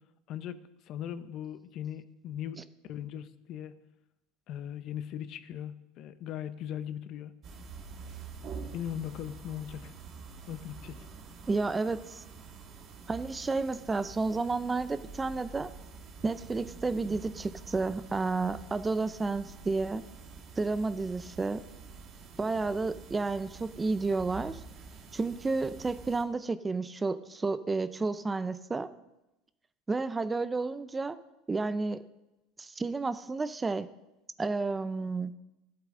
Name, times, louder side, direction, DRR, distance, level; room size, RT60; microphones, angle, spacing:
voice 1, 0.3-3.7 4.5-7.3 8.7-9.9 10.5-11.0, left 10 dB, 50° left, 13 dB, 0.7 m, -39 dB
sound 1, 7.4-26.2, right 5 dB, 45° right, 1.5 m, -47 dB
voice 2, 11.5-12.2 13.1-15.7 16.2-20.0 20.6-21.6 22.4-24.6 25.1-28.9 29.9-31.2 31.5-32.0 32.6-33.9 34.4-35.3, right 3 dB, 15° right, 13 dB, 0.5 m, -31 dB
14.0 x 8.4 x 3.8 m, 0.96 s
supercardioid pair, 120°, 0 cm